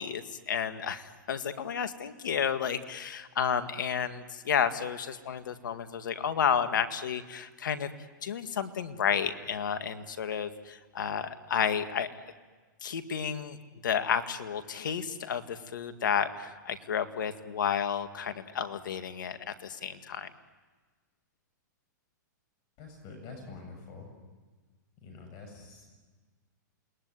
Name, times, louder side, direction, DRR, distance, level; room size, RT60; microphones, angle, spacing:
voice 1, 0.0-7.9 8.2-12.1 12.8-13.6 13.8-20.3, left 7 dB, 80° left, 9 dB, 2.0 m, -31 dB
voice 2, 22.8-24.1 25.0-26.0, left 4 dB, 40° left, 4 dB, 7.6 m, -46 dB
28.0 x 21.0 x 9.8 m, 1.4 s
hypercardioid pair, 125°, 10 cm